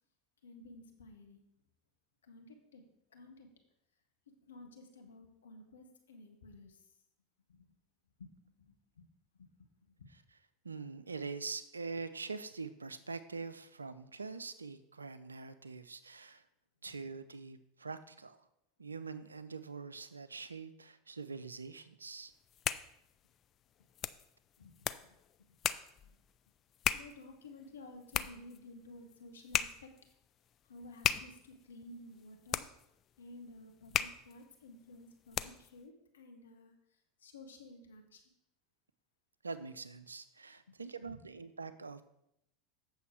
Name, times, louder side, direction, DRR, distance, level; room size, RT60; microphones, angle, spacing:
voice 1, 0.4-1.4 2.2-2.8 3.1-3.5 4.3-6.8 7.5-7.7 8.2-9.1 9.4-10.1 16.9-17.0 24.6-25.2 25.5-25.6 26.0-26.2 26.9-29.9 30.6-32.7 33.2-36.7 37.2-38.2 40.7-41.2, left 2 dB, 80° left, 5 dB, 1.2 m, -54 dB
voice 2, 10.6-16.5 16.8-18.5 18.8-22.3 39.4-42.0, right 4 dB, 90° right, 13 dB, 0.4 m, -44 dB
sound 1, 22.3-35.8, left 10 dB, 40° left, 0.4 m, -39 dB
8.2 x 6.4 x 4.8 m, 0.78 s
hypercardioid pair, 80°, 0 cm